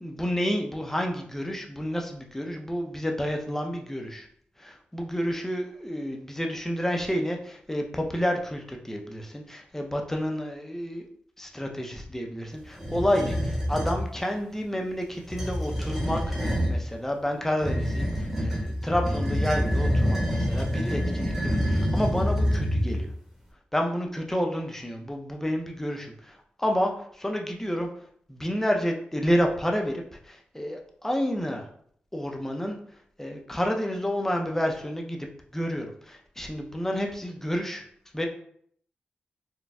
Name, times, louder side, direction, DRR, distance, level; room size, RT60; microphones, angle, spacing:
voice 1, 0.0-4.3 4.6-11.1 11.4-23.1 23.7-27.9 28.3-31.7 32.1-32.8 33.2-35.3 35.5-37.8 38.1-38.3, equal, 10° left, 2 dB, 0.5 m, -30 dB
sound 1, 12.8-14.0 15.2-16.8 17.6-23.1, equal, 10° right, 1.0 m, -26 dB
4.1 x 2.2 x 2.3 m, 0.63 s
cardioid pair, 65°, 4 cm